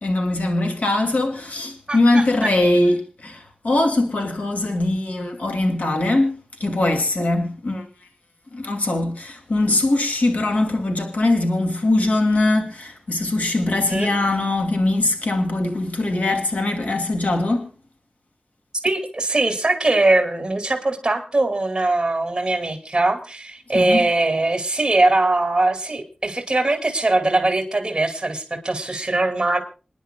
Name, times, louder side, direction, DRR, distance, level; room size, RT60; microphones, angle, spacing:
voice 1, 0.0-7.8 8.5-17.7 23.7-24.0, left 2 dB, 80° left, 2.5 m, -21 dB
voice 2, 1.9-2.5 13.9-14.2 18.8-29.6, right 2 dB, 30° right, 2.6 m, -21 dB
28.0 x 10.0 x 2.3 m
wide cardioid pair, 65°, 3 cm